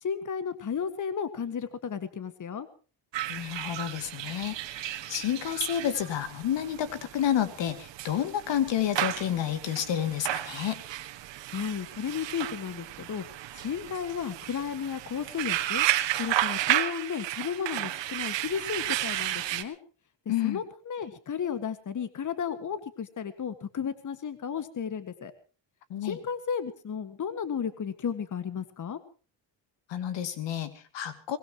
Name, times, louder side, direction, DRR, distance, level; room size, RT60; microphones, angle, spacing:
voice 1, 0.0-2.7 11.5-13.2 13.6-15.9 16.2-19.8 20.4-25.3 26.0-29.0, left 7 dB, 45° left, 12 dB, 1.9 m, -33 dB
sound 1, 3.1-19.6, right 14 dB, 85° right, 1.7 m, -33 dB
voice 2, 3.3-10.8 20.3-20.6 25.9-26.2 29.9-31.4, left 10 dB, 80° left, 11 dB, 2.6 m, -30 dB
23.0 x 21.0 x 3.0 m, 0.36 s
cardioid pair, 115°, 43 cm